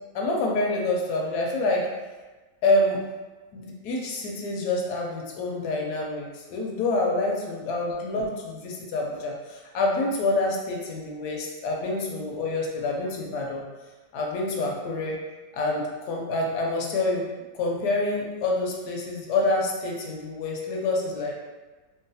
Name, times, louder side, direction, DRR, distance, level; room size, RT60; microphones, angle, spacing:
voice 1, 0.1-1.9 2.6-3.0 3.5-13.6 14.1-15.2 15.5-17.3 17.5-21.3, left 2 dB, 75° left, -1 dB, 1.1 m, -27 dB
3.8 x 2.0 x 2.7 m, 1.2 s
omnidirectional pair, 1.8 m